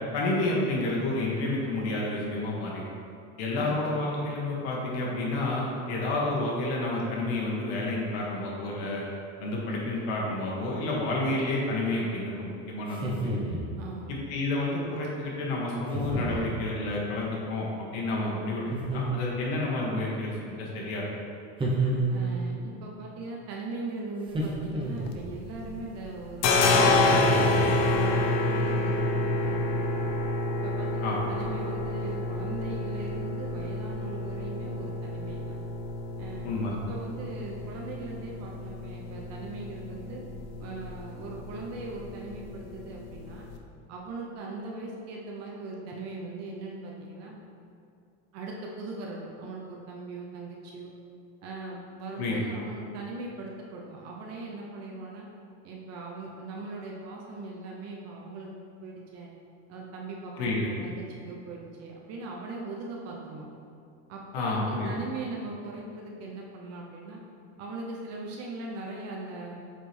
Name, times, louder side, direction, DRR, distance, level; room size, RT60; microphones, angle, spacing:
voice 1, 0.1-2.8 3.4-9.0 9.4-13.3 14.1-21.0 31.0-31.2 36.4-36.7 52.2-52.4 60.3-60.6 64.3-64.9, left 2 dB, 80° left, -4 dB, 1.5 m, -30 dB
voice 2, 3.5-3.9 13.8-14.2 22.1-26.7 27.0-29.1 29.4-30.1 30.6-35.6 36.2-36.6 36.9-40.2 40.6-43.5 43.9-47.4 48.3-50.9 51.4-55.3 55.6-58.5 58.8-59.3 59.7-63.5 64.1-67.2 67.6-69.6, right 3 dB, 50° right, -2 dB, 0.9 m, -40 dB
sound 1, 12.9-13.7 15.9-16.5 18.7-19.5 21.6-22.5 24.3-25.3 27.1-27.9, right 2 dB, 15° right, 0.9 m, -30 dB
sound 2, 24.8-25.8 26.0-43.5, left 2 dB, 50° left, 0.7 m, -28 dB
7.6 x 4.4 x 3.4 m, 2.5 s
supercardioid pair, 135°, 33 cm